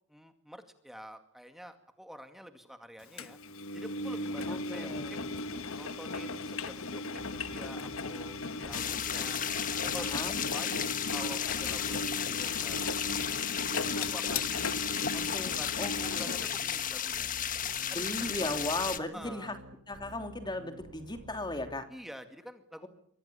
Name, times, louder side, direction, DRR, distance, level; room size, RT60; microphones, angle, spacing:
voice 1, 0.1-3.4 3.7-5.3 5.8-9.4 9.7-10.8 11.1-13.0 13.6-15.0 15.3-17.4 17.9-18.7 19.1-19.5 21.9-22.9, equal, ahead, 7 dB, 2.1 m, -48 dB
Engine, 3.2-16.6, left 2 dB, 70° left, 1.3 m, -37 dB
voice 2, 4.5-5.1 10.0-10.4 15.1-16.3 17.9-19.5 19.9-21.8, left 2 dB, 20° left, 7 dB, 3.1 m, -37 dB
sound 1, 7.2-21.8, equal, 65° right, 3.4 m, -52 dB
sound 2, 8.7-19.0, left 9 dB, 35° left, 1.5 m, -34 dB
28.0 x 24.0 x 7.1 m, 0.67 s
head